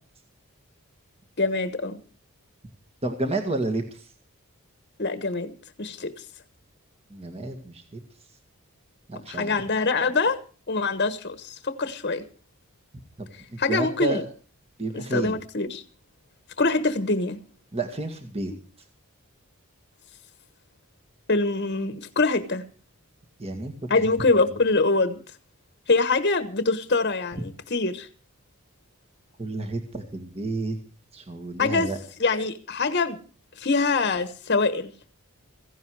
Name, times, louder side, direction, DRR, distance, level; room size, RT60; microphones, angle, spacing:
voice 1, 1.4-2.0 5.0-6.2 9.3-10.4 10.7-12.2 13.3-14.2 14.9-15.8 16.6-17.4 21.3-22.6 23.9-25.2 25.9-28.1 31.6-31.9 32.2-33.2 33.5-34.9, left 3 dB, 45° left, 1.2 m, -24 dB
voice 2, 3.0-4.1 7.1-8.0 9.1-9.5 13.2-14.2 14.8-15.4 17.7-18.5 23.4-24.1 29.4-30.8 31.1-32.0, right 2 dB, 25° right, 1.8 m, -30 dB
16.5 x 15.5 x 4.8 m
head